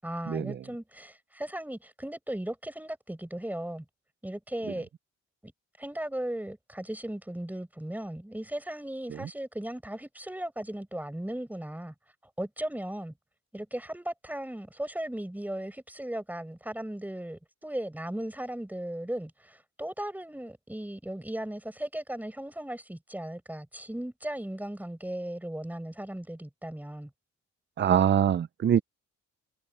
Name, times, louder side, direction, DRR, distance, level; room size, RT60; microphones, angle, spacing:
voice 1, 0.0-3.8 4.2-4.9 5.4-5.5 5.8-11.9 12.4-13.1 13.5-27.1, right 1 dB, 5° right, 6.7 m, -37 dB
voice 2, 27.8-28.8, right 9 dB, 35° right, 0.6 m, -23 dB
cardioid pair, 90°, 30 cm